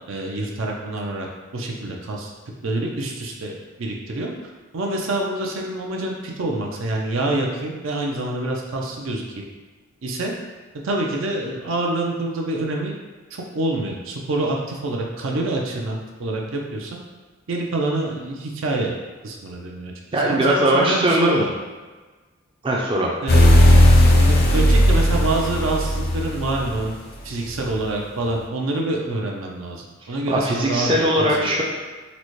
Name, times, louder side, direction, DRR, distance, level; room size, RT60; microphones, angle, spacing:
voice 1, 0.1-1.3 1.5-2.3 2.6-4.3 4.7-9.2 10.0-10.3 10.8-12.9 13.3-17.0 17.5-18.9 19.2-19.9 20.2-21.5 23.2-23.5 24.1-26.9 27.2-31.5, right 2 dB, 75° right, 0 dB, 0.5 m, -26 dB
voice 2, 20.1-21.4 22.6-23.1 30.3-31.6, right 1 dB, 25° right, -3 dB, 0.4 m, -20 dB
sound 1, 23.3-26.8, left 1 dB, 50° left, 0.4 m, -15 dB
4.0 x 2.1 x 3.0 m, 1.3 s
head